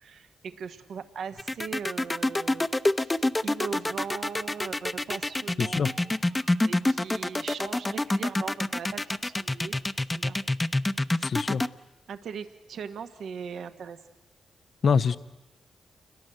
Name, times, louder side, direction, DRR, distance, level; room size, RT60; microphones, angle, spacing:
voice 1, 0.0-9.8 10.1-10.4 11.2-11.3 12.1-14.0, right 6 dB, 80° right, 9 dB, 1.4 m, -39 dB
sound 1, 1.4-11.7, left 2 dB, 20° left, 0.9 m, -26 dB
voice 2, 5.6-5.9 11.2-11.6 14.8-15.2, left 6 dB, 65° left, 14 dB, 0.8 m, -24 dB
28.5 x 21.5 x 7.9 m, 1.1 s
supercardioid pair, 45°, 0 cm